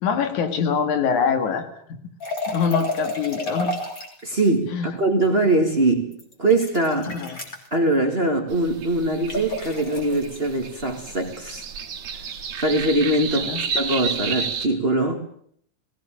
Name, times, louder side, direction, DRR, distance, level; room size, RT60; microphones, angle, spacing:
voice 1, 0.0-2.0 2.5-3.7 4.7-4.9 7.1-7.4 13.3-13.6, left 6 dB, 90° left, 8 dB, 3.3 m, -24 dB
sound 1, 2.2-4.3 6.1-7.7 9.3-10.4, left 1 dB, 30° left, 3.6 m, -30 dB
voice 2, 4.2-6.1 6.4-7.2 7.7-11.7 12.6-13.5 13.7-15.2, right 2 dB, 25° right, 5 dB, 1.9 m, -22 dB
sound 2, 8.5-14.7, right 6 dB, 75° right, 3.1 m, -31 dB
19.0 x 17.5 x 9.0 m, 0.64 s
omnidirectional pair, 3.3 m